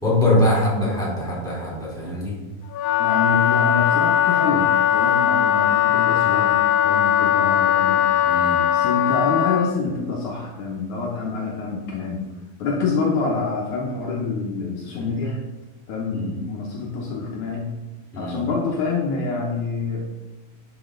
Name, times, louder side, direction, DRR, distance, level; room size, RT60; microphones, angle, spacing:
voice 1, 0.0-2.3 8.2-8.6 16.1-16.4 18.1-18.4, left 1 dB, ahead, -5 dB, 2.6 m, -22 dB
Wind instrument woodwind instrument, 2.7-9.8, left 10 dB, 85° left, 2.3 m, -19 dB
voice 2, 3.0-8.1 8.7-12.2 12.6-15.3 15.9-17.7 18.2-20.0, left 4 dB, 70° left, -1 dB, 2.1 m, -26 dB
10.0 x 6.2 x 3.8 m, 1.1 s
omnidirectional pair, 4.1 m